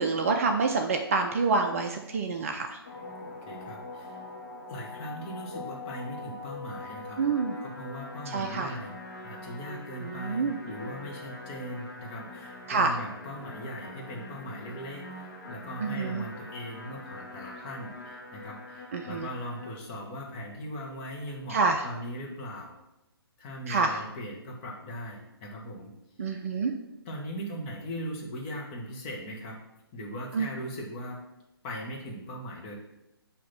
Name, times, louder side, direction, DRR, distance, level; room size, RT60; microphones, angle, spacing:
voice 1, 0.0-2.8 7.2-7.6 8.3-8.7 10.0-10.6 12.7-12.9 15.8-16.2 18.9-19.3 21.5-21.8 23.7-24.0 26.2-26.7 30.3-30.5, right 4 dB, 35° right, 4 dB, 0.5 m, -27 dB
sound 1, 2.8-19.7, left 2 dB, 40° left, 1.3 m, -43 dB
voice 2, 3.4-4.2 4.7-7.4 7.6-8.9 9.2-22.8 23.4-25.9 27.0-29.6 29.9-31.2 31.6-32.8, equal, 25° left, -3 dB, 1.3 m, -39 dB
7.6 x 2.9 x 5.7 m, 0.91 s
figure-of-eight pair, 135°, 13 cm